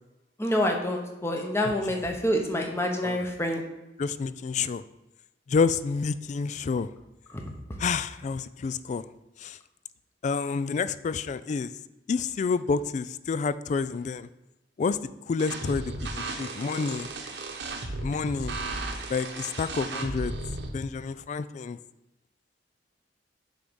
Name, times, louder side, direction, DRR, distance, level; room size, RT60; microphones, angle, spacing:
voice 1, 0.4-3.6, left 1 dB, 15° left, 2 dB, 1.0 m, -27 dB
voice 2, 4.0-4.8 5.5-6.9 7.8-9.0 9.4-9.6 10.2-11.7 12.1-14.3 14.8-15.0 15.3-17.1 18.0-18.6 19.1-20.3 20.7-21.8, left 5 dB, 40° left, 15 dB, 0.3 m, -29 dB
sound 1, 15.4-20.7, right 2 dB, 75° right, 1.0 m, -35 dB
6.7 x 3.9 x 6.2 m, 0.97 s
head